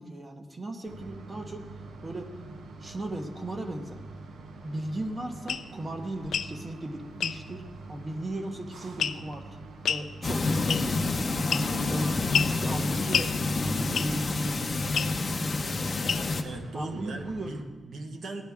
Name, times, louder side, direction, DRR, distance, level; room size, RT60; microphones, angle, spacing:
voice 1, 0.0-1.7 2.0-2.3 2.8-4.0 4.6-9.6 9.9-10.9 11.3-14.7 16.7-17.5, right 1 dB, 25° right, 5 dB, 0.9 m, -37 dB
sound 1, 0.8-17.6, right 3 dB, 80° right, 1.0 m, -45 dB
sound 2, 5.5-5.7 6.2-6.5 7.2-7.4 9.0-9.3 9.8-10.1 10.7-11.0 11.5-11.9 12.3-12.6 13.1-13.3 13.9-14.2 14.9-15.1 16.1-16.4, left 7 dB, 65° left, 0.4 m, -28 dB
sound 3, 10.2-16.4, left 3 dB, 30° left, 0.7 m, -28 dB
voice 2, 16.4-18.4, right 2 dB, 60° right, 4 dB, 1.2 m, -39 dB
15.5 x 9.8 x 3.5 m, 1.5 s
wide cardioid pair, 155°, 0 cm